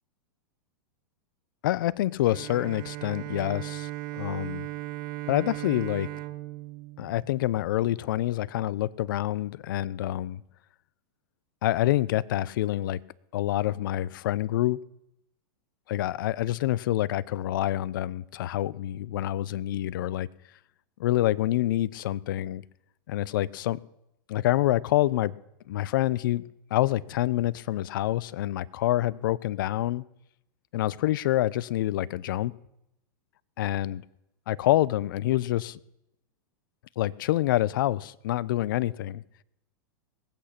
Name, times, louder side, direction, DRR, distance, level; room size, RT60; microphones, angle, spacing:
voice 1, 1.6-4.7 5.3-6.1 7.0-10.4 11.6-13.0 13.3-14.8 15.9-20.3 21.0-22.6 23.1-23.8 24.3-25.3 25.7-26.4 26.7-30.0 30.7-32.5 33.6-34.0 34.5-35.8 37.0-39.2, left 14 dB, 65° left, 0.6 m, -27 dB
Bowed string instrument, 2.3-8.0, right 16 dB, 50° right, 0.9 m, -37 dB
20.0 x 8.6 x 5.9 m
hypercardioid pair, 120°, 12 cm